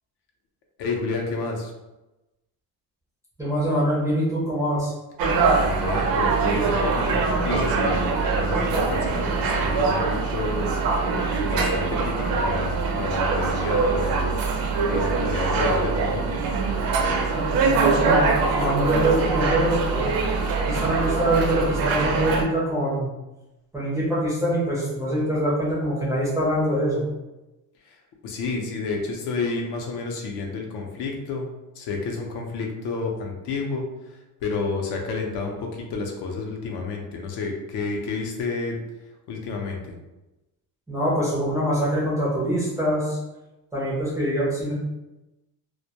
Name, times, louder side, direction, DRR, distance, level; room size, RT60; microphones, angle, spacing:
voice 1, 0.8-1.7 5.6-10.7 11.3-14.4 14.9-16.3 27.9-28.0 28.2-31.5 31.8-33.8 34.4-38.8 39.3-39.8, left 4 dB, 70° left, 1 dB, 0.6 m, -30 dB
voice 2, 3.4-4.9 17.3-20.1 20.6-23.1 23.7-27.1 40.9-43.2 43.7-44.7, right 1 dB, 10° right, -7 dB, 0.3 m, -24 dB
sound 1, 5.2-22.4, right 4 dB, 60° right, 0.5 m, -23 dB
2.1 x 2.1 x 2.7 m, 1.0 s
cardioid pair, 155°, 41 cm